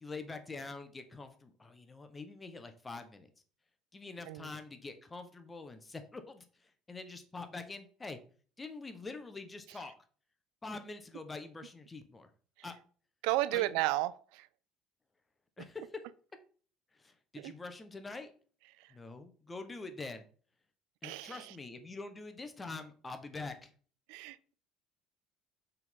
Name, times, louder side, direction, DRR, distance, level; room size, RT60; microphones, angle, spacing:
voice 1, 0.0-3.3 3.9-8.2 8.6-9.9 10.6-12.3 12.6-12.7 13.5-13.8 15.6-16.0 17.0-18.3 18.9-20.2 21.0-23.7, left 3 dB, 20° left, 1.1 m, -45 dB
voice 2, 13.2-14.5 17.4-17.5 21.0-21.5 24.1-24.5, right 17 dB, 80° right, 0.4 m, -33 dB
5.8 x 3.8 x 5.3 m
supercardioid pair, 105°, 0 cm